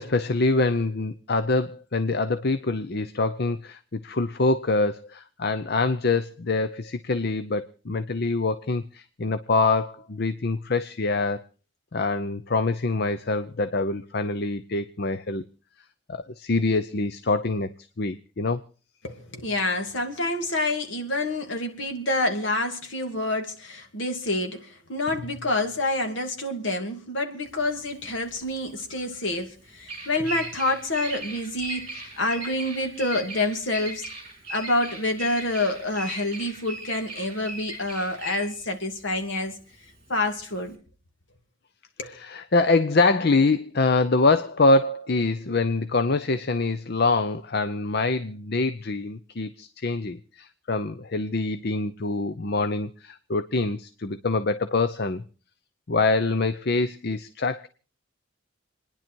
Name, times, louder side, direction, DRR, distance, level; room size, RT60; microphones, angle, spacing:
voice 1, 0.0-11.5 11.9-15.4 16.1-18.6 42.1-55.2 55.9-57.7, left 3 dB, 55° left, 11 dB, 0.7 m, -25 dB
voice 2, 19.0-34.1 34.5-39.6 40.1-40.8 42.0-42.2, left 2 dB, 70° left, 4 dB, 2.5 m, -28 dB
Bird vocalization bird call bird song, 27.5-40.7, right 2 dB, 30° right, 3.5 m, -39 dB
27.5 x 10.5 x 4.5 m, 0.39 s
head